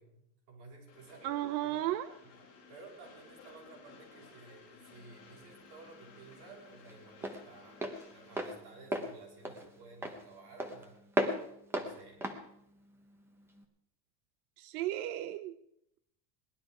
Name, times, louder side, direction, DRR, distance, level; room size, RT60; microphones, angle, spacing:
voice 1, 0.0-1.9 2.2-2.3 2.7-11.0 11.7-12.3, right 3 dB, 50° right, -3 dB, 6.6 m, -54 dB
Train, 0.9-8.5, left 4 dB, 35° left, 3.9 m, -57 dB
voice 2, 1.2-2.1 14.6-15.5, right 14 dB, 90° right, 11 dB, 0.8 m, -34 dB
Walk footsteps, 4.9-13.6, right 1 dB, 5° right, 0.7 m, -38 dB
18.5 x 11.5 x 4.8 m, 0.76 s
cardioid pair, 180°, 44 cm